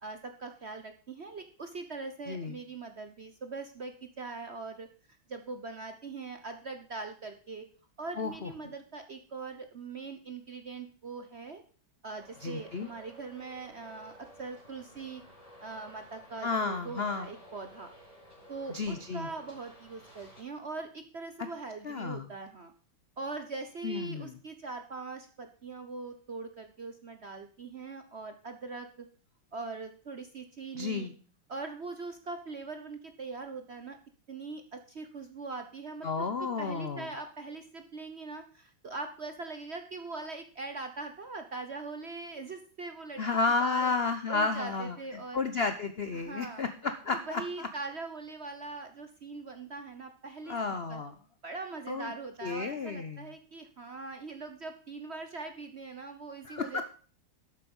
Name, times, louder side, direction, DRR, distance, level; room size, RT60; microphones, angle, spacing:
voice 1, 0.0-4.9 5.3-7.7 8.0-11.6 12.0-15.2 15.6-17.9 18.5-22.7 23.2-29.1 29.5-31.1 31.5-34.0 34.3-36.3 36.6-43.2 43.6-43.9 44.3-45.4 46.1-46.7 47.1-50.6 50.9-51.0 51.4-56.8, right 3 dB, 50° right, 7 dB, 0.8 m, -41 dB
voice 2, 8.2-8.5 12.4-12.9 16.4-17.3 18.7-19.3 21.8-22.3 23.8-24.4 30.7-31.1 36.0-37.1 43.2-47.7 50.5-51.1 51.9-52.1 52.4-53.3 56.5-56.8, left 4 dB, 60° left, 9 dB, 0.6 m, -32 dB
Traffic noise roadway noise, 12.2-20.4, equal, 20° left, 4.6 m, -54 dB
12.0 x 8.2 x 5.4 m, 0.41 s
omnidirectional pair, 2.1 m